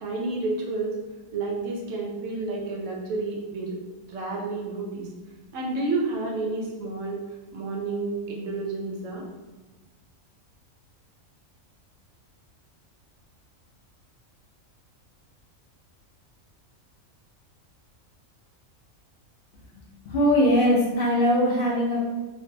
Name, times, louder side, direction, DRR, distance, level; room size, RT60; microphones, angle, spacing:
voice 1, 0.0-1.0 1.3-3.8 4.1-5.1 5.5-7.2 7.5-9.2, right 3 dB, 75° right, -1 dB, 0.9 m, -30 dB
voice 2, 20.1-22.1, equal, 65° left, -4 dB, 0.5 m, -21 dB
2.5 x 2.1 x 2.5 m, 1.2 s
omnidirectional pair, 1.4 m